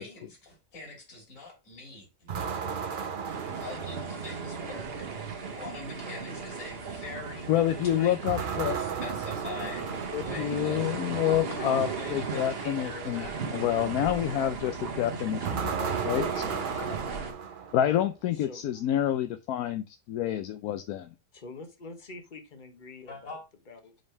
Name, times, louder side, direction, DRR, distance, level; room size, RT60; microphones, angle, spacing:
voice 1, 0.0-2.3 3.5-4.9 5.6-7.5 7.8-9.9 10.1-10.9 11.2-13.5 23.1-23.4, left 3 dB, 50° left, 3.0 m, -44 dB
sound 1, 2.3-4.6 8.3-10.8 15.4-18.1, right 6 dB, 70° right, 0.4 m, -34 dB
sound 2, 3.3-17.3, right 5 dB, 45° right, 1.1 m, -36 dB
voice 2, 7.5-8.8 10.1-17.0 17.7-21.1, left 11 dB, 70° left, 1.0 m, -28 dB
voice 3, 18.3-18.6 21.3-23.4 23.7-23.9, left 3 dB, 30° left, 1.2 m, -46 dB
5.3 x 5.3 x 4.5 m
omnidirectional pair, 1.8 m